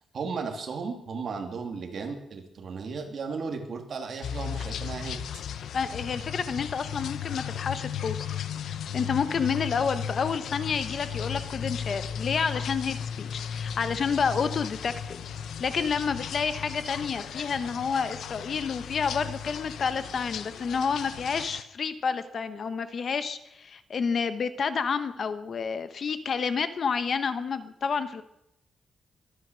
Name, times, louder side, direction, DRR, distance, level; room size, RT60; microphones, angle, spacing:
voice 1, 0.1-5.2, right 5 dB, 50° right, 4 dB, 2.7 m, -35 dB
sound 1, 4.2-21.6, left 8 dB, 80° left, 0.8 m, -36 dB
voice 2, 5.7-8.3 8.9-15.2 15.6-28.2, left 6 dB, 45° left, 12 dB, 1.0 m, -29 dB
23.5 x 9.6 x 6.3 m, 0.80 s
wide cardioid pair, 155°, 0 cm